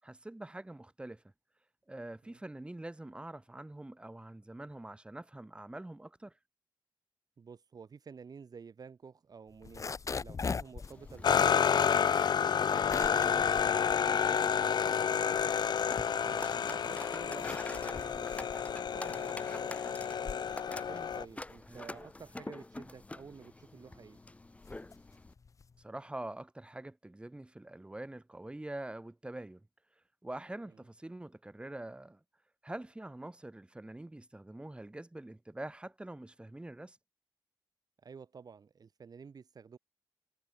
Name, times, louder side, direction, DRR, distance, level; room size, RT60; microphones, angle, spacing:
voice 1, 0.0-1.2 1.9-6.3 13.1-13.3 21.7-21.9 25.8-29.6 30.2-32.2 32.6-37.0, right 1 dB, 15° right, 6.6 m, -45 dB
voice 2, 7.4-9.9 10.2-12.3 12.8-15.4 15.9-19.7 20.0-20.2 20.8-24.2 30.7-30.8 38.0-39.8, right 5 dB, 55° right, 2.8 m, -51 dB
sound 1, 9.5-14.8 15.2-16.6 17.1-25.8, left 5 dB, 40° left, 1.1 m, -43 dB
sound 2, 11.2-21.2, left 7 dB, 60° left, 0.5 m, -30 dB
sound 3, 14.4-25.3, left 2 dB, 15° left, 2.7 m, -48 dB
wide cardioid pair, 150°, 8 cm